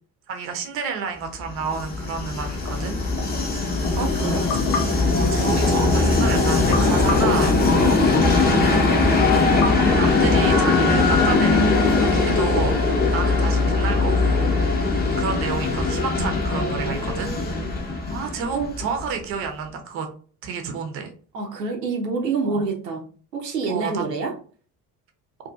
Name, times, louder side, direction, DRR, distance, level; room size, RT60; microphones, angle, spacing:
voice 1, 0.3-3.0 4.2-4.8 5.1-7.6 8.5-9.1 9.6-12.8 13.1-14.5 15.2-17.3 18.1-20.1 20.4-21.1 22.4-22.7 23.7-24.0, right 5 dB, 30° right, 5 dB, 0.5 m, -30 dB
Train, 1.5-19.2, left 3 dB, 20° left, 0.6 m, -20 dB
voice 2, 3.9-4.5 7.7-8.0 12.1-12.5 16.5-17.7 18.5-18.7 21.3-23.1 23.3-24.3, right 4 dB, 85° right, 1 dB, 0.6 m, -28 dB
sound 1, 4.5-6.1 6.7-8.3 9.6-11.0, left 5 dB, 75° left, 0.7 m, -33 dB
2.5 x 2.3 x 2.2 m, 0.42 s
figure-of-eight pair, 55°, 48 cm